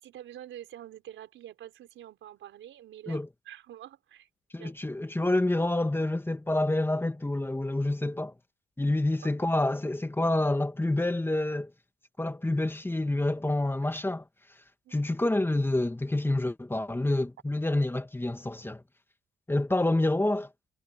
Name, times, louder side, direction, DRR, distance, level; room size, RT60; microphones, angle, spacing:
voice 1, 0.0-4.3 4.6-4.7 8.9-9.0 9.2-9.3 14.8-15.0, right 12 dB, 80° right, 4.6 m, -47 dB
voice 2, 4.5-8.3 8.8-11.7 12.2-14.2 14.9-18.8 19.5-20.5, left 2 dB, 10° left, 1.9 m, -28 dB
cardioid pair, 90°, 20 cm